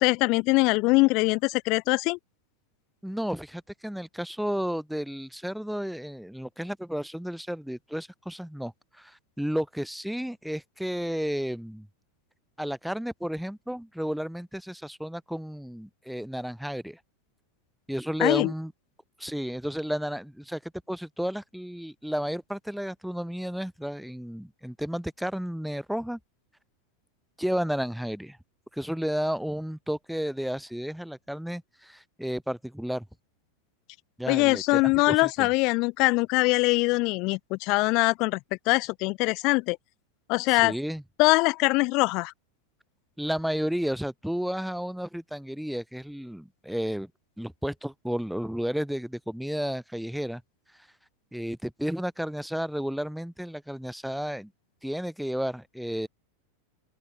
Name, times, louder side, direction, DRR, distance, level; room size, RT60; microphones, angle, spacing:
voice 1, 0.0-2.2 18.2-18.5 34.3-38.4 38.7-39.8 40.3-40.7 41.2-42.3, left 26 dB, 50° left, 0.6 m, -23 dB
voice 2, 3.0-11.9 12.6-17.0 17.9-18.7 19.2-26.2 27.4-28.4 28.7-33.1 34.2-35.5 40.5-41.0 43.2-47.1 47.4-50.4 51.3-54.5 54.8-56.1, equal, ahead, 1.7 m, -32 dB
open air
hypercardioid pair, 90°, 0 cm